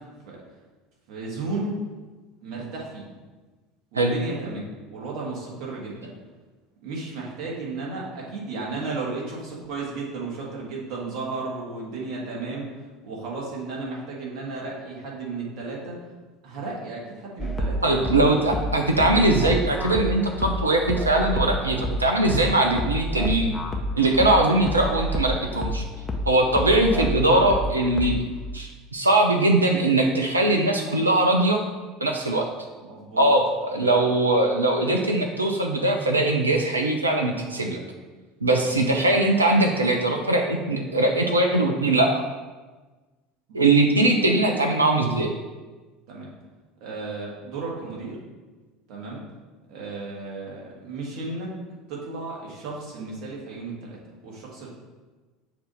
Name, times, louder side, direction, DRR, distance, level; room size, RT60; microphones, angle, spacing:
voice 1, 1.1-1.8 2.4-3.1 3.9-6.1 6.8-12.7 13.0-16.0 16.4-18.6 19.0-19.1 32.8-33.3 33.7-34.1 38.6-39.0 43.5-43.6 45.1-45.2 46.1-46.3 46.8-48.2 48.9-49.2 49.7-51.5 51.9-54.8, right 3 dB, 55° right, -3 dB, 1.6 m, -34 dB
sound 1, 17.4-28.4, equal, 20° left, 0.7 m, -29 dB
voice 2, 17.8-23.5 24.0-25.8 26.3-28.2 28.5-31.6 32.0-32.5 33.2-37.8 38.4-42.1 43.5-45.3, right 2 dB, 85° right, 3 dB, 0.4 m, -21 dB
6.6 x 2.7 x 5.5 m, 1.3 s
figure-of-eight pair, 70°, 0 cm